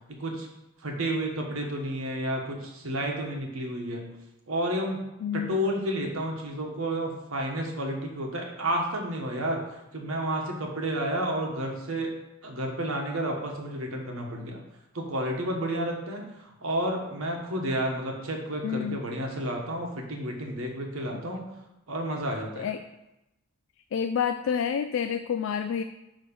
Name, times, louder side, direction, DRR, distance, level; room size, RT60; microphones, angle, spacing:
voice 1, 0.8-4.1 4.5-5.0 5.3-9.6 9.9-12.1 12.4-14.6 14.9-21.4 21.9-22.7, right 1 dB, 80° right, 1 dB, 1.4 m, -31 dB
voice 2, 5.2-5.5 18.6-19.0 22.6-22.8 23.9-25.8, left 7 dB, 65° left, 9 dB, 0.3 m, -28 dB
9.2 x 3.1 x 5.4 m, 0.94 s
head